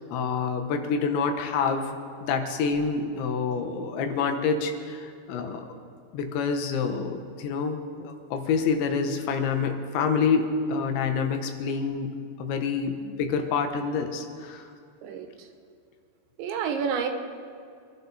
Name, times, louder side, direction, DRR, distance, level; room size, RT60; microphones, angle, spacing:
voice 1, 0.1-1.9 2.2-5.7 6.1-12.1 12.4-14.7, left 5 dB, 85° left, 5 dB, 3.6 m, -27 dB
voice 2, 15.0-15.5 16.4-17.1, right 6 dB, 85° right, 4 dB, 3.6 m, -29 dB
25.5 x 12.0 x 4.2 m, 2.4 s
omnidirectional pair, 5.1 m